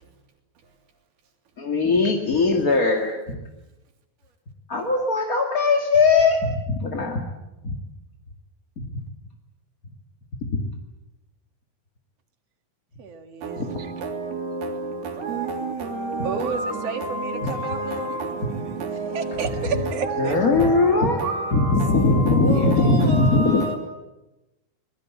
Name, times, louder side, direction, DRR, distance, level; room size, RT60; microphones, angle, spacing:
voice 1, 1.6-3.4 4.7-7.3 7.6-7.7 8.8-8.9 10.4-10.7 13.6-13.7 17.4-17.5 20.2-21.2 21.5-23.6, left 3 dB, 30° left, 1.7 m, -20 dB
voice 2, 13.0-13.9 16.2-18.1 19.1-20.4, right 5 dB, 50° right, 2.6 m, -31 dB
voice 3, 17.1-18.2 20.0-20.2 21.2-22.3 23.1-23.8, right 2 dB, 80° right, 5.2 m, -29 dB
25.5 x 21.0 x 8.5 m
omnidirectional pair, 4.4 m